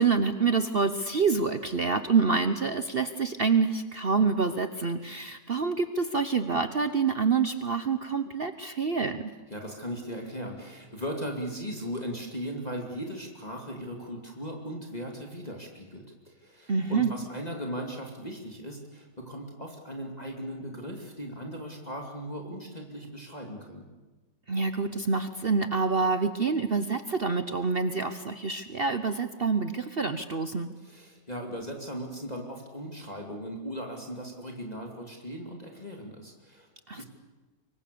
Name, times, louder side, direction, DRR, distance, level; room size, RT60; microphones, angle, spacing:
voice 1, 0.0-9.3 16.7-17.1 24.5-30.7 36.9-37.0, right 5 dB, 45° right, 10 dB, 0.8 m, -27 dB
voice 2, 9.5-23.8 30.8-36.7 37.0-37.1, equal, 20° left, 1 dB, 2.6 m, -38 dB
25.0 x 22.5 x 6.9 m, 1.2 s
omnidirectional pair, 1.9 m